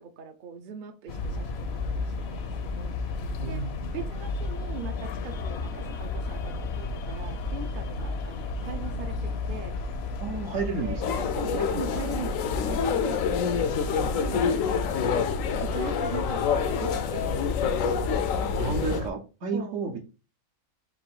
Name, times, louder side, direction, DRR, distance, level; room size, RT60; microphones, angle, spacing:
voice 1, 0.0-3.2 3.5-3.6 3.9-9.8 10.8-11.0 11.4-13.2 13.7-15.3 15.6-19.1 19.5-19.8, right 6 dB, 55° right, 0.6 m, -41 dB
sound 1, 1.1-19.1, left 3 dB, 60° left, 0.7 m, -33 dB
voice 2, 3.4-3.9 10.2-11.1 13.7-14.1 18.6-20.0, right 4 dB, 70° right, 1.3 m, -32 dB
sound 2, 11.0-19.0, left 7 dB, 85° left, 1.0 m, -27 dB
4.7 x 2.6 x 3.7 m
omnidirectional pair, 1.4 m